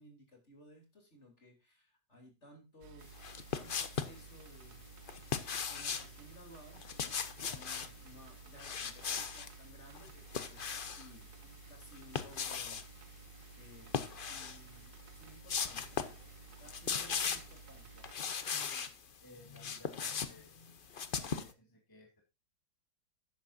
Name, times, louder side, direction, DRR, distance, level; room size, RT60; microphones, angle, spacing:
voice 1, 0.0-3.3 3.5-4.8 5.3-12.8 13.5-13.9 14.3-16.1 16.6-18.1, equal, 35° left, 2 dB, 3.7 m, -58 dB
sound 1, 2.8-18.1, right 6 dB, 60° right, 1.3 m, -54 dB
sound 2, 3.2-4.2 5.1-6.1 6.8-7.9 8.6-9.5 10.0-11.1 11.9-12.9 13.8-14.6 15.0-15.1 15.5-16.2 16.5-17.6 18.0-18.9 19.4-21.5, left 6 dB, 55° left, 0.5 m, -38 dB
voice 2, 18.4-18.9 19.2-20.6 21.1-22.2, equal, 10° left, 1 dB, 2.3 m, -58 dB
12.5 x 9.7 x 2.7 m, 0.26 s
omnidirectional pair, 2.1 m